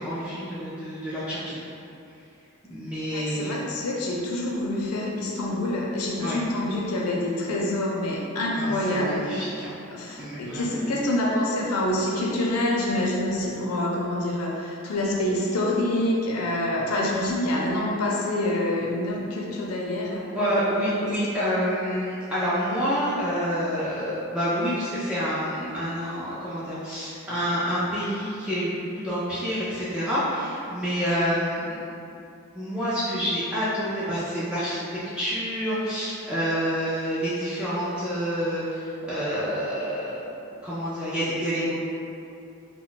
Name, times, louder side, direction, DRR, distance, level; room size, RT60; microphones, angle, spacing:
voice 1, 0.0-1.6 2.7-3.5 6.2-6.4 8.5-9.7 10.2-10.8 20.4-31.9 32.5-34.8 35.1-40.3 40.6-41.7, equal, 5° right, -12 dB, 0.3 m, -28 dB
voice 2, 3.1-9.3 9.9-20.3 21.1-21.2, left 1 dB, 90° left, -3 dB, 0.5 m, -26 dB
2.3 x 2.1 x 3.7 m, 2.6 s
head